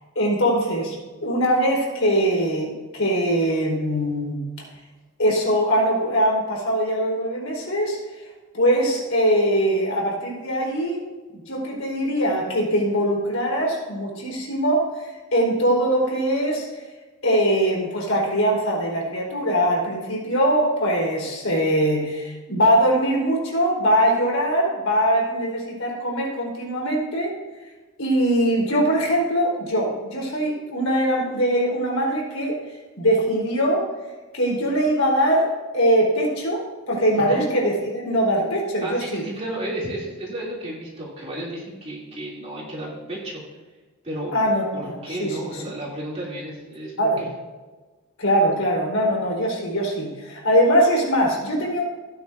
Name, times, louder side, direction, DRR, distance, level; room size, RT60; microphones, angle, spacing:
voice 1, 0.1-1.0 1.2-4.4 5.2-8.0 8.5-11.0 11.3-16.7 17.2-27.3 28.0-32.6 33.0-33.9 34.3-39.3 44.3-44.6 44.9-45.6 47.0-47.2 48.2-51.8, equal, 65° left, -2 dB, 4.3 m, -22 dB
voice 2, 37.1-37.5 38.8-43.4 44.0-44.3 44.7-47.3, right 1 dB, 30° right, -5 dB, 2.9 m, -32 dB
17.0 x 9.8 x 2.7 m, 1.3 s
head